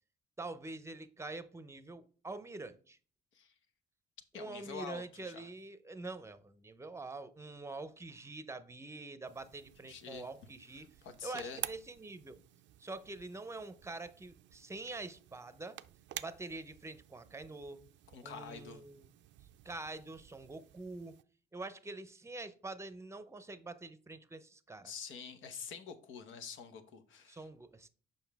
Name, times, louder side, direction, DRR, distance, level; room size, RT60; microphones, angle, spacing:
voice 1, 0.4-3.0 4.3-10.9 11.2-12.4 12.8-15.8 16.2-17.8 18.2-19.1 19.6-21.1 21.5-24.9 27.3-27.9, right 3 dB, 15° right, 0.6 m, -45 dB
voice 2, 4.3-5.5 9.9-10.3 11.0-11.6 18.1-18.8 24.8-27.5, left 6 dB, 80° left, 1.0 m, -46 dB
sound 1, 9.2-21.2, right 13 dB, 65° right, 0.4 m, -51 dB
7.0 x 5.3 x 3.4 m
cardioid pair, 90°, 20 cm